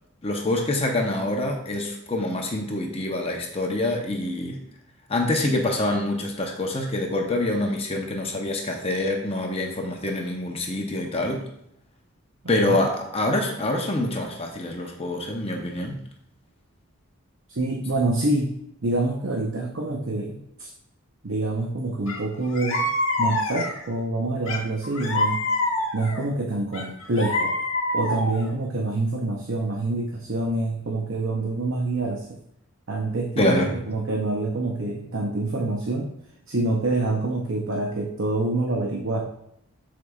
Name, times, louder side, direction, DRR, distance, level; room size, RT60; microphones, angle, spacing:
voice 1, 0.2-4.6 5.1-11.4 12.5-16.0 33.4-33.7, left 1 dB, 25° left, 1 dB, 0.8 m, -26 dB
voice 2, 12.4-12.8 17.5-18.5 18.8-20.7 21.2-22.9 23.2-25.4 25.9-27.5 27.9-32.3 32.9-36.1 36.5-39.2, right 2 dB, 65° right, 0 dB, 0.8 m, -26 dB
sound 1, 22.1-22.2 22.5-23.9 24.5-26.2 26.7-28.5, left 2 dB, 65° left, 1.5 m, -26 dB
12.5 x 4.8 x 2.4 m, 0.76 s
head